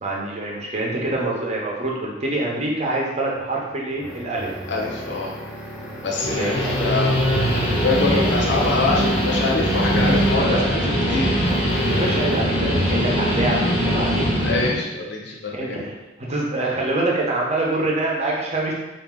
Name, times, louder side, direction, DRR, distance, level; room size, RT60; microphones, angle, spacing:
voice 1, 0.0-4.5 6.3-6.8 8.1-8.3 10.4-10.6 11.9-14.3 15.6-15.9 16.2-18.7, right 2 dB, 30° right, -3 dB, 0.8 m, -25 dB
sound 1, 3.3-10.5 11.4-12.5, equal, 5° right, 0.9 m, -34 dB
voice 2, 4.7-5.4 6.0-7.1 7.7-10.8 11.1-11.3 14.4-15.8, left 3 dB, 60° left, -2 dB, 0.7 m, -24 dB
Guitar, 6.0-14.7, equal, 25° left, 0.7 m, -21 dB
4.1 x 2.6 x 3.6 m, 1.1 s
head